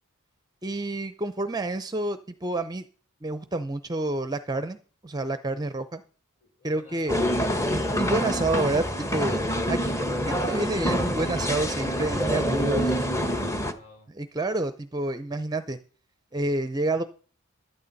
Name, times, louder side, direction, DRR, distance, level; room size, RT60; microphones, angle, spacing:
voice 1, 0.6-2.8 3.2-4.8 5.0-6.0 6.6-7.2 7.7-9.4 9.7-12.9 14.1-15.8 16.3-17.0, right 2 dB, 20° right, 11 dB, 0.6 m, -29 dB
voice 2, 6.6-7.3 12.1-14.1, left 3 dB, 35° left, 1 dB, 5.5 m, -50 dB
sound 1, 7.1-13.7, equal, 15° left, 1.1 m, -26 dB
14.5 x 12.0 x 4.1 m, 0.40 s
head